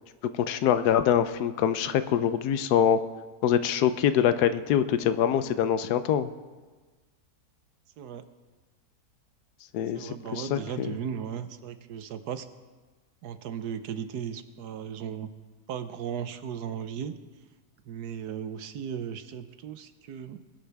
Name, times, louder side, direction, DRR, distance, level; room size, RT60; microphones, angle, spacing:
voice 1, 0.3-3.0 3.4-6.3 9.7-11.0, left 9 dB, 85° left, 11 dB, 1.2 m, -24 dB
voice 2, 9.9-12.5 13.2-15.3 15.7-17.1 17.9-20.4, right 8 dB, 85° right, 10 dB, 1.4 m, -36 dB
21.0 x 12.0 x 3.5 m, 1.3 s
omnidirectional pair, 1.7 m